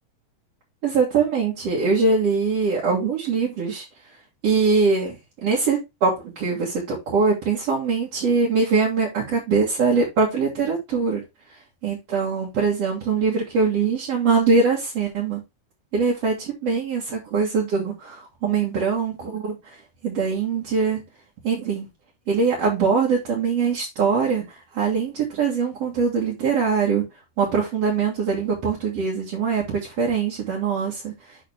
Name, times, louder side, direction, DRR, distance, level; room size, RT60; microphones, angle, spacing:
voice 1, 0.8-3.8 4.4-5.2 5.4-11.2 11.8-15.4 15.9-19.6 20.0-21.0 21.4-21.9 22.3-24.4 24.7-27.1 27.4-31.1, right 5 dB, 55° right, 2.9 m, -22 dB
11.0 x 4.1 x 3.5 m
omnidirectional pair, 3.4 m